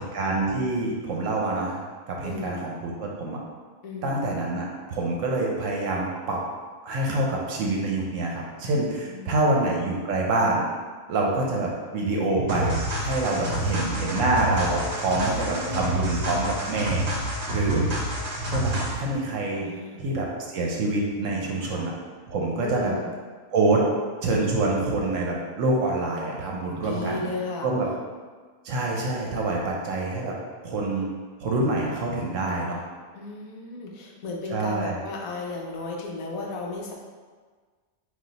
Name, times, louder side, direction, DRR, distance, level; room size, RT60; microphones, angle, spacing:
voice 1, 0.0-1.8 2.1-3.4 4.0-6.4 6.8-10.6 11.1-17.1 17.5-17.8 18.5-19.7 20.0-21.9 22.3-22.9 23.5-23.9 24.2-27.2 27.6-27.9 28.6-30.4 30.6-31.1 31.4-32.8 34.5-35.0, right 2 dB, 65° right, -1 dB, 0.9 m, -26 dB
voice 2, 2.2-2.7 3.8-4.3 9.1-9.5 13.3-13.8 15.1-16.2 19.6-20.0 21.3-21.9 22.6-23.1 26.6-27.7 33.1-36.9, left 3 dB, 70° left, -1 dB, 1.0 m, -35 dB
sound 1, 12.5-19.1, right 1 dB, 50° right, 0.5 m, -28 dB
4.0 x 2.5 x 3.9 m, 1.5 s
omnidirectional pair, 1.6 m